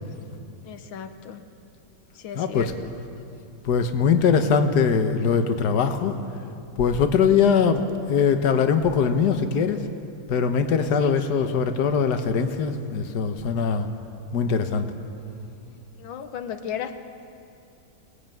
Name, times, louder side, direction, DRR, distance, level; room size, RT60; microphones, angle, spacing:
voice 1, 0.6-1.4 2.2-2.7 11.0-11.6 16.0-17.0, left 8 dB, 80° left, 8 dB, 1.7 m, -35 dB
voice 2, 2.3-2.7 3.6-6.1 6.8-9.8 10.3-13.9 14.3-14.9, left 6 dB, 60° left, 7 dB, 1.7 m, -21 dB
23.5 x 18.0 x 9.1 m, 2.7 s
omnidirectional pair, 2.1 m